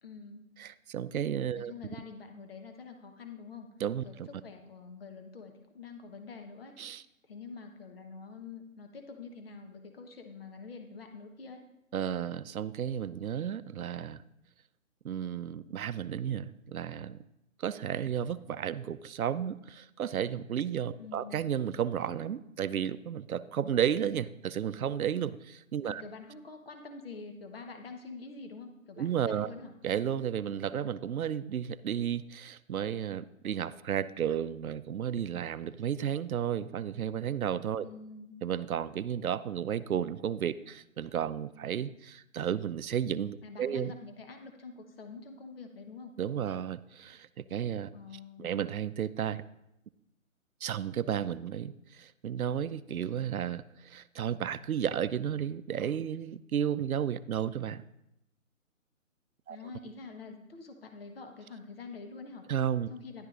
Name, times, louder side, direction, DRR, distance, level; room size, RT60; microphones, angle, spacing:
voice 1, 0.0-0.4 1.6-3.7 4.0-4.1 4.4-6.7 7.3-11.6 21.0-21.5 25.8-29.7 37.8-38.4 43.4-46.1 47.9-48.5 59.5-62.4 62.9-63.3, left 4 dB, 45° left, 5 dB, 1.2 m, -46 dB
voice 2, 0.6-1.7 3.8-4.3 6.8-7.0 11.9-14.2 15.0-17.2 17.6-26.0 29.0-29.5 29.8-37.8 38.4-43.9 46.2-47.9 48.4-49.4 50.6-57.8 59.5-59.6 62.5-62.9, right 9 dB, 85° right, 16 dB, 0.6 m, -33 dB
11.0 x 11.0 x 2.5 m, 0.85 s
hypercardioid pair, 160°, 42 cm